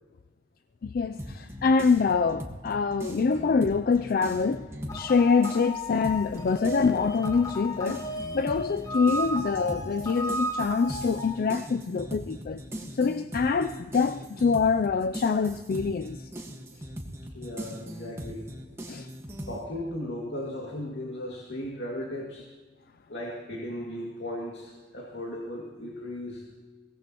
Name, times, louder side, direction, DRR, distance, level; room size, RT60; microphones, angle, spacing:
voice 1, 0.8-4.7 4.9-8.1 8.3-12.6 12.9-16.3 18.9-19.1, left 5 dB, 55° left, 0.4 m, -25 dB
sound 1, 1.2-5.1 5.4-19.6, equal, 15° right, 1.5 m, -40 dB
sound 2, 4.9-11.4, equal, 20° left, 1.1 m, -34 dB
voice 2, 17.3-18.5 19.5-22.5 23.1-26.4, left 1 dB, 85° left, 2.2 m, -36 dB
23.0 x 17.5 x 3.0 m
head